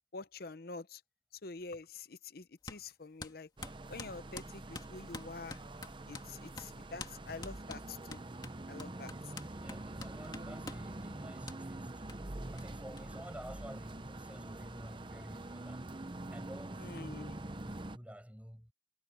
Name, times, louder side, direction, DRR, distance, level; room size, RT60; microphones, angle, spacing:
voice 1, 0.1-1.0 1.4-3.5 3.9-5.6 6.1-8.2 8.7-9.1 16.8-17.3, left 3 dB, 55° left, 0.7 m, -46 dB
sound 1, 2.7-2.8 3.2-6.3 6.6-6.7 7.0-7.2 7.4-10.9 11.5-11.6 12.1-12.2 12.6-12.7 13.0-13.1 13.3-14.0, left 3 dB, 25° left, 2.4 m, -47 dB
sound 2, 3.6-18.0, right 2 dB, 25° right, 0.8 m, -45 dB
voice 2, 9.4-16.9 17.4-18.7, equal, 10° right, 5.8 m, -51 dB
head